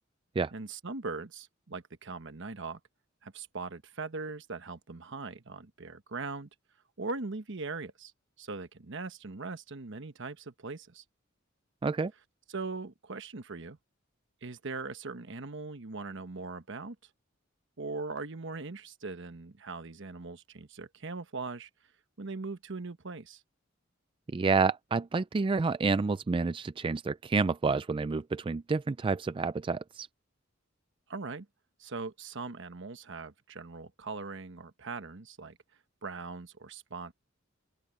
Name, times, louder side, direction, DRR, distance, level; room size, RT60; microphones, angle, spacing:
voice 1, 0.5-2.8 3.2-6.5 7.0-8.1 8.4-11.0 12.5-13.8 14.4-17.0 17.8-21.7 22.2-23.4 31.1-31.5 31.8-35.6 36.0-37.1, right 3 dB, 65° right, 1.2 m, -40 dB
voice 2, 24.3-30.1, right 4 dB, 25° right, 0.3 m, -29 dB
open air
head